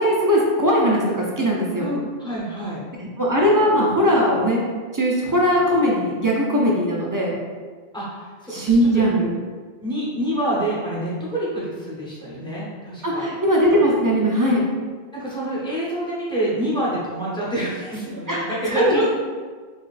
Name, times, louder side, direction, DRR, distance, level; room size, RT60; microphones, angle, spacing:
voice 1, 0.0-1.9 3.2-4.6 4.9-7.3 8.5-9.3 13.0-14.6 18.3-19.1, equal, 30° right, -3 dB, 0.4 m, -19 dB
voice 2, 1.8-2.8 7.9-9.1 9.8-13.3 15.1-19.1, right 1 dB, 5° left, -7 dB, 0.8 m, -27 dB
4.1 x 3.0 x 2.4 m, 1.5 s
omnidirectional pair, 1.1 m